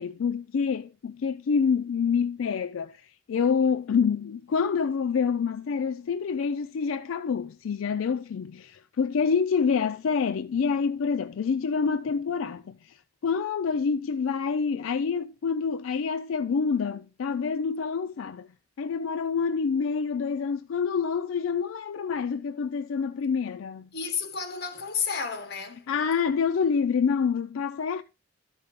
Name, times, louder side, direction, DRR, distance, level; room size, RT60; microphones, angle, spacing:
voice 1, 0.0-18.5 18.8-23.9 25.9-28.0, left 6 dB, 80° left, 0.4 m, -27 dB
voice 2, 23.9-25.9, left 6 dB, 55° left, 1.3 m, -31 dB
12.5 x 5.4 x 3.5 m
head